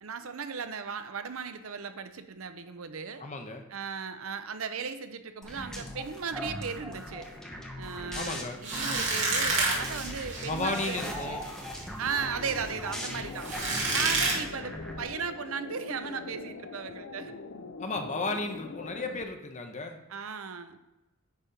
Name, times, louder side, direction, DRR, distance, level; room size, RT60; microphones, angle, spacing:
voice 1, 0.0-3.2 3.7-7.3 7.8-11.4 12.0-13.5 13.9-17.3 20.1-20.8, right 6 dB, 75° right, 9 dB, 0.7 m, -36 dB
voice 2, 3.2-3.6 8.1-8.6 10.4-11.4 17.8-20.0, left 3 dB, 35° left, 4 dB, 0.9 m, -34 dB
sound 1, 5.4-15.0, equal, 5° left, 1.0 m, -40 dB
sound 2, 8.6-14.3, right 3 dB, 60° right, 2.7 m, -31 dB
sound 3, 12.1-19.2, left 4 dB, 60° left, 0.5 m, -43 dB
9.7 x 4.3 x 5.1 m, 0.98 s
head